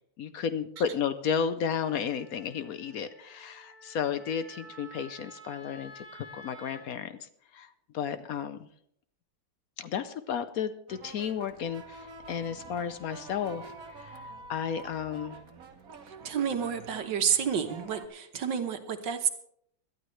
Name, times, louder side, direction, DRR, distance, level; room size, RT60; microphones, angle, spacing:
voice 1, 0.2-8.7 9.8-13.7 14.0-15.4, left 7 dB, 70° left, 12 dB, 0.8 m, -33 dB
Wind instrument woodwind instrument, 1.7-6.8, equal, 45° left, 3.2 m, -51 dB
sound 1, 10.9-18.1, right 3 dB, 50° right, 1.5 m, -47 dB
voice 2, 16.0-19.3, right 7 dB, 65° right, 7 dB, 1.7 m, -30 dB
21.0 x 12.0 x 3.2 m, 0.70 s
omnidirectional pair, 2.2 m